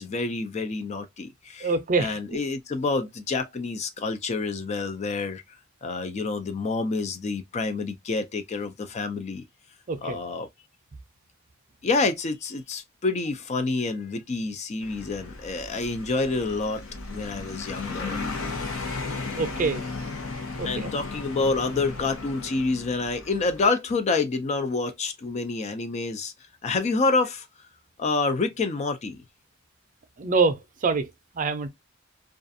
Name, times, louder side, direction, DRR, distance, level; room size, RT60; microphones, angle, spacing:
voice 1, 0.0-5.4 5.8-9.4 10.0-10.5 11.8-16.8 17.1-18.2 20.6-26.3 26.6-27.5 28.0-29.2, left 3 dB, 35° left, 0.3 m, -28 dB
voice 2, 1.6-2.4 9.9-10.2 19.3-19.8 20.6-20.9 30.2-31.1 31.3-31.7, right 4 dB, 40° right, 0.5 m, -25 dB
sound 1, 14.8-23.7, left 3 dB, 85° left, 0.8 m, -35 dB
2.4 x 2.3 x 2.5 m
head